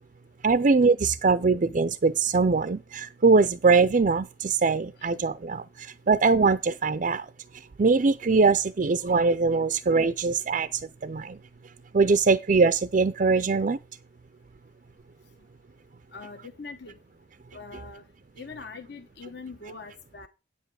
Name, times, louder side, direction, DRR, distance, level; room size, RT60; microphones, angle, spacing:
voice 1, 0.4-7.3 7.5-11.4 11.9-13.8, right 4 dB, 40° right, 0.4 m, -22 dB
voice 2, 16.1-16.9 17.5-18.0 18.4-20.3, left 4 dB, 60° left, 1.0 m, -42 dB
9.5 x 8.1 x 4.8 m
head